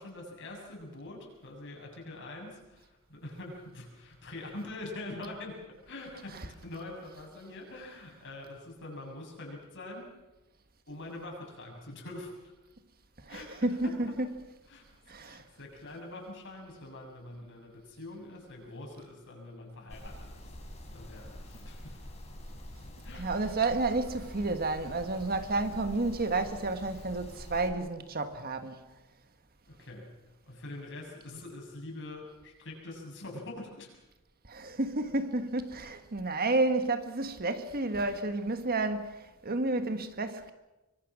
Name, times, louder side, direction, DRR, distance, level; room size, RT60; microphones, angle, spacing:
voice 1, 0.0-10.1 10.9-12.5 13.3-14.1 14.7-22.1 23.0-23.6 29.7-30.2 30.5-33.9, left 2 dB, 60° left, 7.2 m, -44 dB
voice 2, 13.3-14.3 15.1-15.4 23.2-28.8 34.5-39.1 39.4-40.5, right 2 dB, 45° right, 1.6 m, -31 dB
sound 1, 19.9-27.7, left 1 dB, 30° left, 4.4 m, -45 dB
24.5 x 24.0 x 6.2 m
head